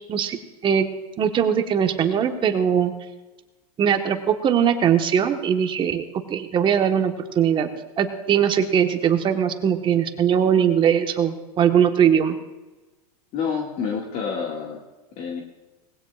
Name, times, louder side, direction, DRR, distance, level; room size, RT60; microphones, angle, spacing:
voice 1, 1.2-2.9 3.8-7.7 8.0-12.4, right 8 dB, 25° right, 6 dB, 1.3 m, -20 dB
voice 2, 13.3-14.8 15.2-15.4, left 6 dB, 40° left, 0 dB, 2.0 m, -28 dB
20.0 x 16.0 x 2.4 m, 1.1 s
hypercardioid pair, 125°, 20 cm